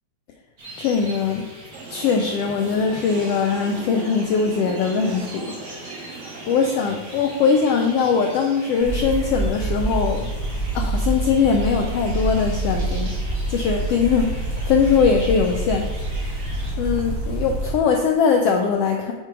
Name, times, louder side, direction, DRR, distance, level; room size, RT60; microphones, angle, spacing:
sound 1, 0.6-16.7, right 2 dB, 40° right, 1.8 m, -41 dB
voice 1, 0.8-1.5 1.9-6.0 6.5-10.3 10.7-13.2 13.5-15.9 16.8-19.1, left 5 dB, 80° left, 3 dB, 1.4 m, -21 dB
sound 2, 1.7-6.7, right 4 dB, 75° right, 2.9 m, -38 dB
sound 3, 8.8-17.7, right 1 dB, 55° left, 3.7 m, -26 dB
8.5 x 4.5 x 4.7 m, 1.2 s
omnidirectional pair, 3.3 m